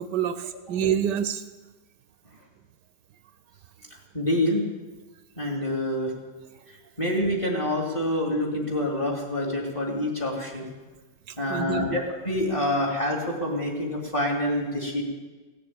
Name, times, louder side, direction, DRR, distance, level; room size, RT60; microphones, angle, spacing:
voice 1, 0.0-1.4 11.3-12.0, right 8 dB, 75° right, 11 dB, 1.3 m, -27 dB
voice 2, 4.1-4.6 5.4-6.1 6.7-10.7 11.4-15.0, left 1 dB, 15° left, 0 dB, 2.4 m, -27 dB
16.5 x 6.9 x 8.6 m, 1.3 s
omnidirectional pair, 1.9 m